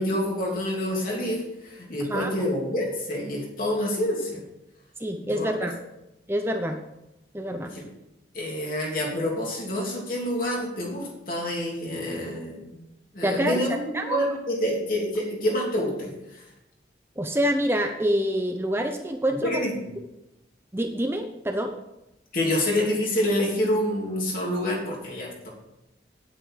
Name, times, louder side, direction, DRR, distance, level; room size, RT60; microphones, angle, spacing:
voice 1, 0.0-4.4 5.2-5.7 7.6-7.9 8.3-12.7 13.1-16.4 19.4-19.9 22.3-25.5, left 1 dB, 50° left, -2 dB, 3.2 m, -27 dB
voice 2, 2.0-2.3 5.0-5.7 6.3-6.8 7.3-7.7 13.2-13.6 13.9-14.2 17.2-19.6 20.7-21.8, equal, 15° right, 4 dB, 0.6 m, -26 dB
9.8 x 9.0 x 4.9 m, 0.92 s
head